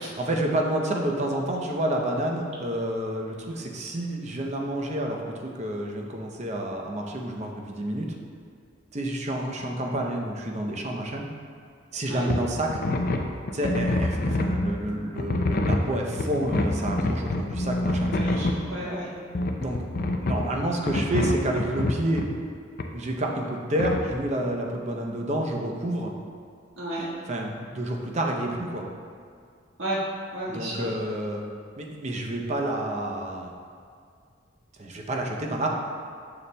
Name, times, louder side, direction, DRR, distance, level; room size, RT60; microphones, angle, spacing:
voice 1, 0.2-8.2 8.9-11.3 11.9-12.8 13.5-18.3 19.6-19.8 20.2-22.2 22.9-26.1 27.3-28.9 30.5-31.4 31.8-33.5 34.8-35.7, right 1 dB, 35° right, 1 dB, 0.6 m, -29 dB
sound 1, 12.3-12.4 12.7-14.8 15.2-18.6 19.3-20.5 20.9-22.3 22.8-22.9 23.8-24.0, left 2 dB, 45° left, 0.4 m, -26 dB
voice 2, 18.1-19.1 26.8-27.1 29.8-30.0 30.3-30.9, right 1 dB, 80° right, -7 dB, 1.5 m, -32 dB
6.9 x 6.9 x 2.2 m, 2.2 s
head